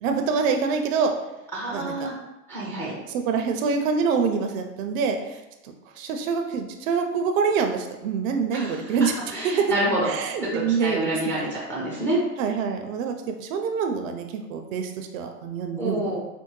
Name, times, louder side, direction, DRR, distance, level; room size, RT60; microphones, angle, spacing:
voice 1, 0.0-1.1 1.7-1.9 3.1-5.4 6.0-9.2 10.1-11.3 12.4-16.2, right 5 dB, 55° right, 5 dB, 0.5 m, -26 dB
voice 2, 1.5-2.1 2.5-2.9 8.5-8.8 9.3-10.1 10.4-12.2 15.8-16.2, right 1 dB, 5° left, -5 dB, 0.4 m, -27 dB
4.4 x 2.1 x 3.1 m, 1.0 s
hypercardioid pair, 130°, 47 cm